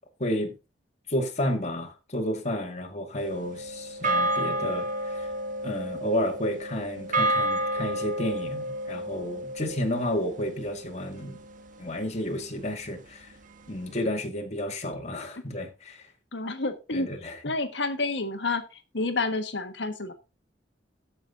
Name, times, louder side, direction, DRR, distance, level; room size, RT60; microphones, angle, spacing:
voice 1, 0.2-0.5 1.1-4.9 5.1-5.3 5.6-11.4 11.8-13.3 13.7-16.0 16.9-17.5, left 1 dB, 40° left, 2.1 m, -31 dB
sound 1, 3.2-11.7, right 1 dB, 50° right, 1.5 m, -30 dB
voice 2, 16.3-17.1 17.4-18.6 18.9-20.1, left 3 dB, 70° left, 1.5 m, -29 dB
14.0 x 6.3 x 3.8 m
head